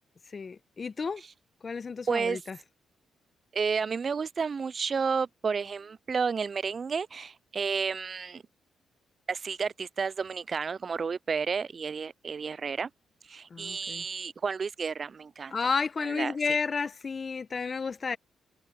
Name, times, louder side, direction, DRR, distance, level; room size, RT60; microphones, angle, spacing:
voice 1, 0.3-1.2 1.6-2.6 13.5-14.0 15.5-18.2, left 5 dB, 45° left, 1.1 m, -32 dB
voice 2, 2.1-2.4 3.5-8.4 9.3-12.9 13.3-15.5 16.0-16.3, right 5 dB, 45° right, 0.3 m, -31 dB
cardioid pair, 65°, 0 cm